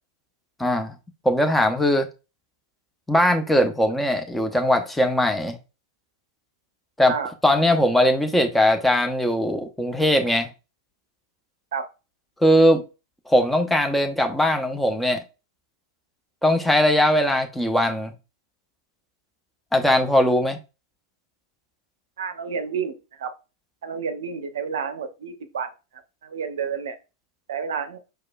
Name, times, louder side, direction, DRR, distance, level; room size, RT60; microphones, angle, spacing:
voice 1, 0.6-0.9 1.2-2.1 3.1-5.6 7.0-7.1 7.4-10.5 12.4-12.8 13.3-15.2 16.4-18.1 19.7-20.6, left 1 dB, 5° left, 0.7 m, -20 dB
voice 2, 7.0-7.3 11.7-11.9 22.2-23.3 23.8-25.7 26.2-27.0 27.5-28.0, right 6 dB, 60° right, 0.6 m, -30 dB
4.7 x 4.7 x 2.3 m
figure-of-eight pair, 95°, 2 cm